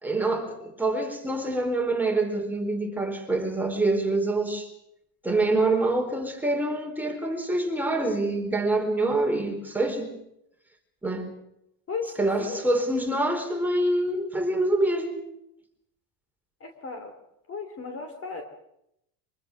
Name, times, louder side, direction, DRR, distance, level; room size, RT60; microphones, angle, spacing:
voice 1, 0.0-4.7 5.2-10.1 11.0-11.3 12.2-15.3, right 2 dB, 5° right, 4.3 m, -26 dB
voice 2, 16.6-17.1 17.5-18.4, left 5 dB, 25° left, 3.1 m, -35 dB
24.5 x 23.5 x 6.4 m
cardioid pair, 140°, 50 cm